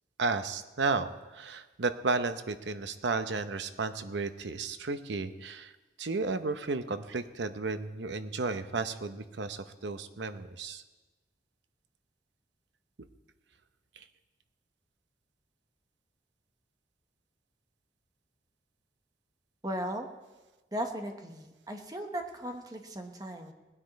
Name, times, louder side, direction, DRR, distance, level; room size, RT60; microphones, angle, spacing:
voice 1, 0.2-5.7 6.0-10.8 14.0-14.1, right 3 dB, 85° right, 10 dB, 0.8 m, -33 dB
voice 2, 19.6-20.1 20.7-23.5, right 1 dB, 20° right, 4 dB, 1.1 m, -37 dB
19.0 x 9.8 x 4.2 m, 1.2 s
head